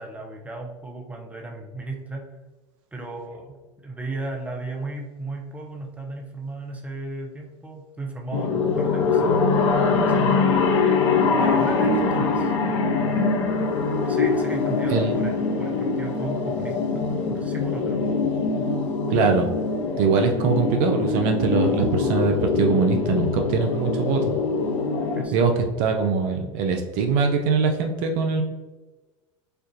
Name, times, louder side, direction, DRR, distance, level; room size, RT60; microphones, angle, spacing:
voice 1, 0.0-2.3 2.9-3.6 3.8-10.5 11.3-13.3 14.0-18.1 25.1-25.3 25.6-25.8, right 2 dB, 10° right, 1 dB, 0.6 m, -36 dB
sound 1, 8.3-25.3, left 4 dB, 70° left, 0.5 m, -23 dB
voice 2, 19.1-19.5 20.0-24.3 25.3-25.5 25.8-28.4, right 5 dB, 55° right, 4 dB, 0.5 m, -22 dB
4.3 x 2.4 x 2.6 m, 1.2 s
hypercardioid pair, 80°, 16 cm